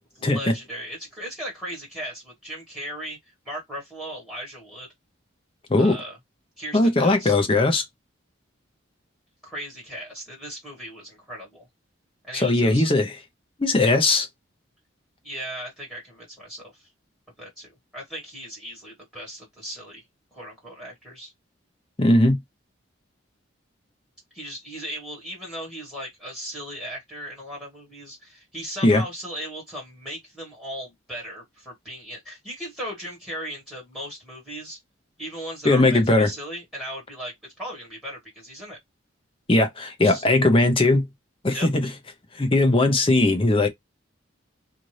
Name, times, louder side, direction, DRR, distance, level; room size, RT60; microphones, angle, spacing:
voice 1, 0.2-3.2 3.4-4.9 5.8-6.2 6.6-7.4 9.4-11.7 12.2-12.9 15.2-16.9 17.4-20.0 20.3-21.3 24.3-34.8 35.2-38.8 40.0-40.2 41.5-41.7, equal, 5° right, 1.5 m, -37 dB
voice 2, 6.7-7.8 12.3-13.1 13.6-14.3 22.0-22.4 28.8-29.0 35.6-36.3 39.5-41.1 41.4-41.9 42.4-43.7, left 2 dB, 25° left, 0.6 m, -19 dB
2.7 x 2.6 x 3.1 m
head